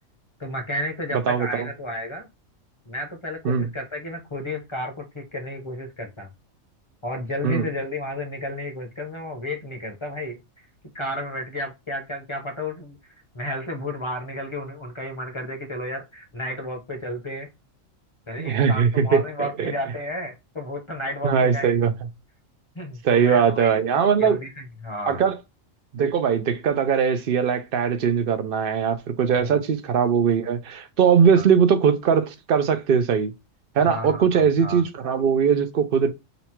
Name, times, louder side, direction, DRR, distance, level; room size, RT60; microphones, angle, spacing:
voice 1, 0.4-2.3 2.9-6.3 7.0-10.7 10.9-13.0 13.3-17.5 18.3-21.9 22.7-25.2 29.4-29.6 31.3-31.4 33.8-34.8, left 1 dB, 25° left, 0.8 m, -32 dB
voice 2, 1.1-1.7 3.4-3.7 7.4-7.7 18.4-19.7 21.2-21.9 23.0-24.4 25.1-25.4 25.9-33.3 33.8-36.1, right 7 dB, 55° right, 0.7 m, -20 dB
4.0 x 2.3 x 4.3 m
omnidirectional pair, 1.4 m